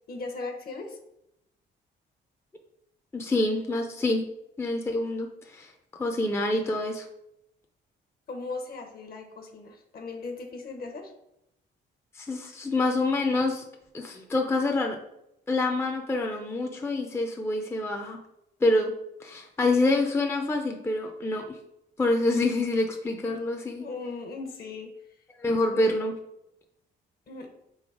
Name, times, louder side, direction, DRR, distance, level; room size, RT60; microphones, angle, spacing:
voice 1, 0.1-1.0 8.3-11.1 23.8-24.9 25.5-25.9 27.3-27.5, left 3 dB, 50° left, 5 dB, 0.9 m, -38 dB
voice 2, 3.1-4.2 4.6-7.1 12.1-13.6 13.9-15.0 15.5-18.2 18.6-18.9 19.2-21.6 22.0-23.8 25.4-26.1, left 2 dB, 15° left, 3 dB, 0.5 m, -26 dB
3.9 x 2.7 x 4.8 m, 0.82 s
cardioid pair, 90°, 20 cm